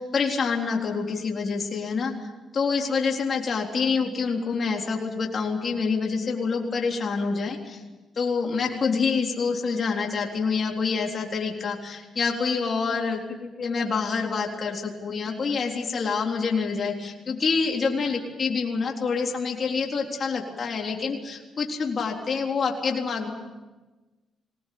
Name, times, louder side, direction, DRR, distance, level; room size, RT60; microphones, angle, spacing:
voice 1, 0.0-2.2 2.5-7.8 8.2-23.3, left 5 dB, 50° left, 0 dB, 3.9 m, -27 dB
23.0 x 19.0 x 8.7 m, 1.2 s
cardioid pair, 80°, 0 cm